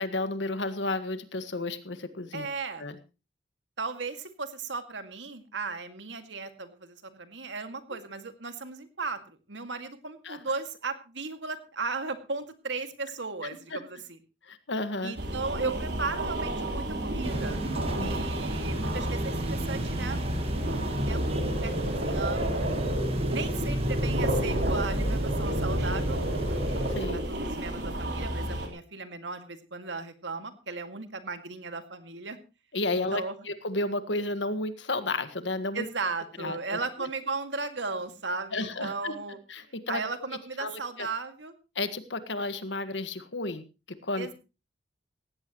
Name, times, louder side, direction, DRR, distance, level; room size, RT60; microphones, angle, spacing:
voice 1, 0.0-2.5 2.8-3.0 10.2-10.4 13.7-13.8 14.5-15.1 18.0-18.1 27.0-27.2 32.7-35.9 36.4-36.8 38.5-39.1 39.5-40.0 40.6-41.1 41.8-43.6 44.0-44.3, left 2 dB, 85° left, 10 dB, 1.7 m, -32 dB
voice 2, 2.3-2.9 3.8-14.2 15.0-17.6 18.0-20.2 20.6-22.5 23.3-26.2 27.1-32.4 33.1-33.4 35.7-39.4 39.9-41.5 44.2-44.3, right 4 dB, 85° right, 8 dB, 2.2 m, -36 dB
sound 1, 15.2-28.7, right 1 dB, 70° right, 4.0 m, -30 dB
sound 2, 17.2-27.0, right 1 dB, 35° right, 1.4 m, -33 dB
17.5 x 16.0 x 3.1 m, 0.30 s
head